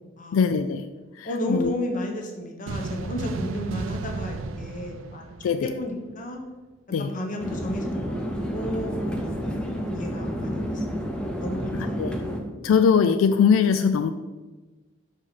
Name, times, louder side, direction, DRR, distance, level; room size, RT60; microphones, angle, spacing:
voice 1, 0.3-0.9 1.2-1.7 5.4-5.7 6.9-7.1 11.7-12.1 12.6-14.1, left 6 dB, 90° left, 9 dB, 0.3 m, -21 dB
voice 2, 1.2-5.2 5.6-6.4 7.0-8.3 8.5-11.0 11.4-12.1, left 1 dB, 40° left, 2 dB, 0.9 m, -33 dB
sound 1, 2.7-6.1, right 3 dB, 85° right, 0.4 m, -34 dB
sound 2, 7.4-12.4, equal, 5° left, 0.7 m, -30 dB
5.7 x 5.0 x 4.1 m, 1.2 s
head